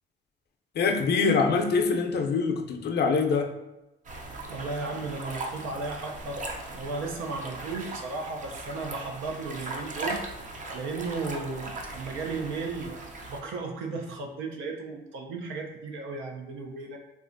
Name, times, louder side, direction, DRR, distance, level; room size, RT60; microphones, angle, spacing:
voice 1, 0.8-3.5, left 4 dB, 55° left, 4 dB, 0.5 m, -24 dB
sound 1, 4.0-13.4, right 2 dB, 40° right, 0.5 m, -39 dB
voice 2, 4.5-6.4 6.7-10.2 10.7-13.0 13.3-17.0, right 3 dB, 85° right, 2 dB, 0.6 m, -35 dB
3.2 x 2.4 x 2.5 m, 0.98 s
cardioid pair, 90°, 20 cm